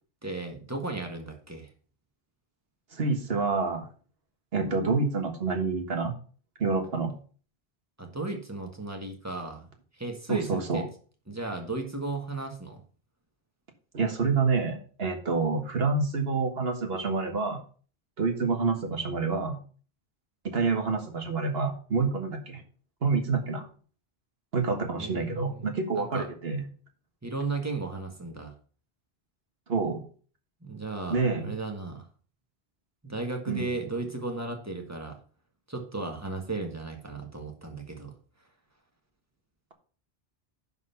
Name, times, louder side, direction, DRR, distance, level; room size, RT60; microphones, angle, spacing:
voice 1, 0.2-1.7 8.0-9.7 9.9-10.9 11.3-12.8 25.0-26.3 27.2-28.5 30.6-32.0 33.0-35.2 35.7-38.1, right 3 dB, 15° right, 3 dB, 1.6 m, -35 dB
voice 2, 2.9-3.9 4.5-6.1 6.6-7.1 10.3-10.8 13.9-17.6 18.2-19.6 20.4-22.6 23.0-23.6 24.5-26.7 29.7-30.0 31.1-31.5 33.5-33.7, right 4 dB, 70° right, 5 dB, 1.7 m, -27 dB
11.0 x 4.1 x 5.7 m, 0.41 s
omnidirectional pair, 1.1 m